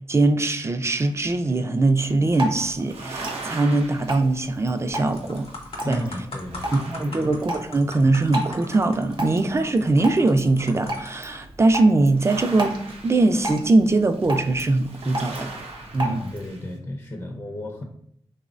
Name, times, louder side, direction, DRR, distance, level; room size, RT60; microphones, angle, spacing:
voice 1, 0.1-5.5 5.9-6.0 6.7-15.5 15.9-16.2, right 2 dB, 25° right, 8 dB, 0.3 m, -21 dB
sound 1, 0.8-1.6 2.8-6.1 6.3-7.9 8.3-10.3 11.4-11.6 12.0-16.7, right 3 dB, 85° right, 0.5 m, -41 dB
Drip, 2.0-16.5, right 1 dB, 55° right, 0.8 m, -35 dB
sound 2, 4.3-4.6 5.0-11.4 12.1-12.2, left 2 dB, 65° left, 0.7 m, -41 dB
voice 2, 5.8-7.3 16.0-17.8, left 1 dB, 30° left, 2 dB, 0.5 m, -33 dB
3.2 x 2.0 x 2.5 m, 0.68 s
cardioid pair, 45°, 10 cm